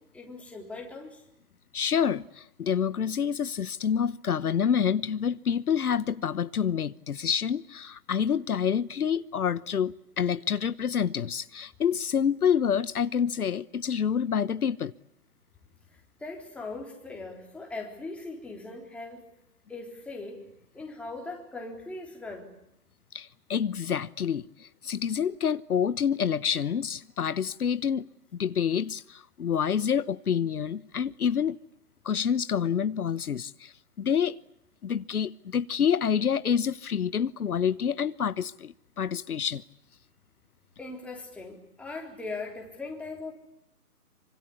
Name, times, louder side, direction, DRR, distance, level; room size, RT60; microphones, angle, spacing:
voice 1, 0.1-1.2 16.2-19.2 19.7-20.4 20.7-22.5 40.8-43.3, left 3 dB, 5° left, 3.8 m, -39 dB
voice 2, 1.7-14.9 23.1-28.1 28.4-31.6 32.0-34.4 34.8-39.6, left 7 dB, 75° left, 1.1 m, -27 dB
27.5 x 25.5 x 8.5 m
hypercardioid pair, 155°, 45 cm